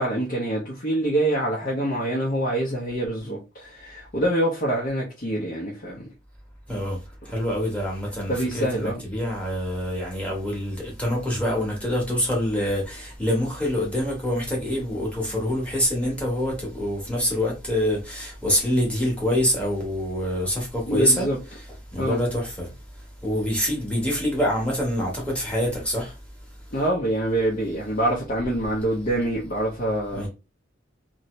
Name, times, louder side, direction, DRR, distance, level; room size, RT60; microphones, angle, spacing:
voice 1, 0.0-6.1 8.3-9.0 20.9-21.4 22.0-22.2 26.7-30.3, right 1 dB, 40° left, 0.7 m, -25 dB
voice 2, 7.3-21.3 21.5-21.7 21.9-22.7 23.2-26.1 30.1-30.3, equal, 5° left, 1.1 m, -25 dB
2.7 x 2.7 x 3.0 m
head